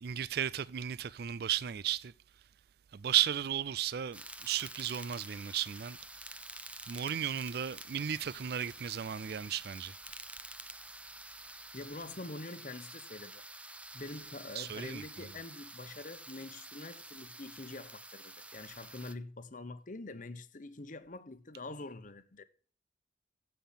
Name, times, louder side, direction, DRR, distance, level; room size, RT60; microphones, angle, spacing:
voice 1, 0.0-2.1 2.9-6.0 6.9-10.0 14.6-15.0, right 10 dB, 60° right, 0.4 m, -34 dB
sound 1, 4.1-19.1, right 2 dB, 5° right, 0.6 m, -49 dB
voice 2, 11.7-13.4 13.9-22.4, left 2 dB, 45° left, 1.0 m, -45 dB
16.0 x 5.7 x 5.6 m
head